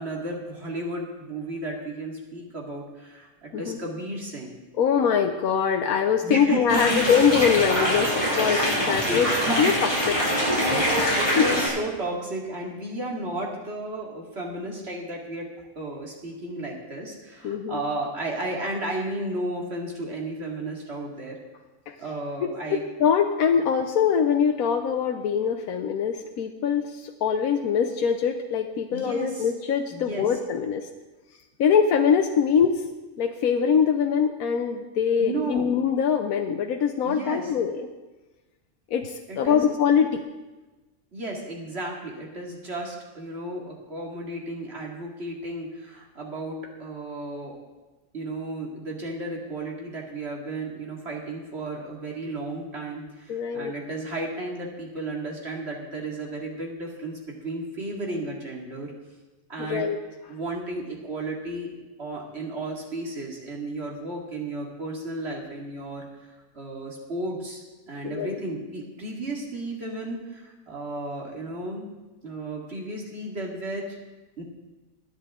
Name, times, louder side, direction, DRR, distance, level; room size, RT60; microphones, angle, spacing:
voice 1, 0.0-4.6 6.2-7.0 8.4-9.6 10.9-21.4 22.0-22.8 28.9-29.5 29.9-30.3 35.2-35.7 37.0-37.5 39.3-39.6 41.1-47.7 48.1-58.9 59.5-59.9 60.3-61.7 62.0-66.3 66.5-71.9 72.2-74.0 74.4-74.5, right 2 dB, 45° right, -1 dB, 2.5 m, -33 dB
voice 2, 4.8-9.3 9.6-9.9 11.0-11.5 17.4-17.8 21.9-22.0 22.4-30.9 31.6-32.8 33.2-37.9 38.9-40.2 53.3-53.7 59.6-60.0 68.0-68.4, left 7 dB, 85° left, 4 dB, 1.2 m, -23 dB
sound 1, 6.7-11.7, equal, 15° left, 5.9 m, -24 dB
20.5 x 9.8 x 3.7 m, 1.2 s
omnidirectional pair, 1.5 m